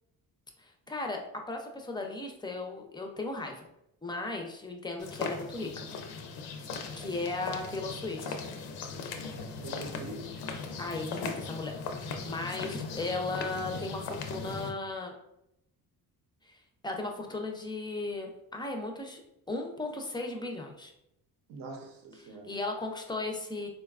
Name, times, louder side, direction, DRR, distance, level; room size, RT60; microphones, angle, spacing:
voice 1, 0.9-1.2 1.5-3.7 4.0-5.9 7.0-8.4 10.8-15.1 16.5-16.6 16.8-19.2 19.5-20.9 22.5-23.7, left 2 dB, 10° left, 2 dB, 0.4 m, -36 dB
sound 1, 5.0-14.7, left 4 dB, 90° left, 0.5 m, -38 dB
voice 2, 9.6-10.5 12.8-12.9 21.5-22.5, right 2 dB, 65° right, 2 dB, 0.7 m, -44 dB
3.9 x 2.2 x 2.3 m, 0.82 s
cardioid pair, 105°, 36 cm